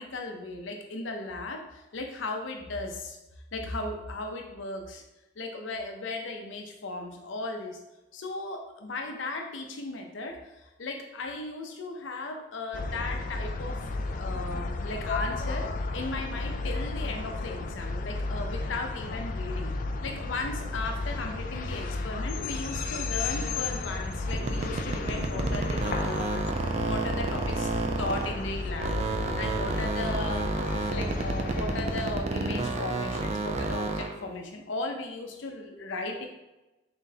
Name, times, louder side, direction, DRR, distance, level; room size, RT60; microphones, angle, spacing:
voice 1, 0.0-1.6 1.9-3.2 3.5-5.0 5.4-7.8 8.1-15.7 15.9-19.7 20.0-26.5 26.8-27.7 28.0-29.0 29.4-30.5 30.9-36.3, left 2 dB, 75° left, 3 dB, 0.6 m, -36 dB
sound 1, 12.7-32.2, left 3 dB, 45° left, 0.3 m, -33 dB
sound 2, 24.3-28.5 28.8-34.2, right 3 dB, 35° right, 0.4 m, -31 dB
3.9 x 3.8 x 2.8 m, 1.0 s
head